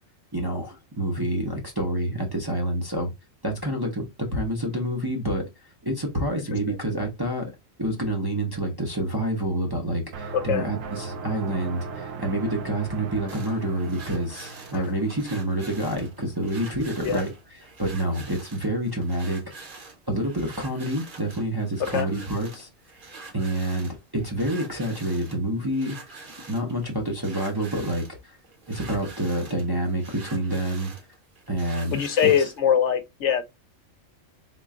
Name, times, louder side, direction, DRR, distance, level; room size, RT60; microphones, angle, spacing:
voice 1, 0.3-3.1 3.4-4.0 4.3-5.4 5.8-7.5 7.8-19.4 20.1-22.7 23.3-25.9 26.5-28.4 28.7-30.9 31.5-32.5, right 1 dB, 25° right, 0.6 m, -28 dB
sound 1, 10.1-16.8, right 4 dB, 80° right, 1.0 m, -38 dB
voice 2, 10.3-10.7 14.7-14.8 17.0-17.2 21.9-22.1 31.9-33.4, left 8 dB, 70° left, 0.8 m, -22 dB
sound 2, 13.3-32.6, right 3 dB, 45° right, 1.0 m, -45 dB
3.6 x 2.2 x 3.6 m
omnidirectional pair, 1.4 m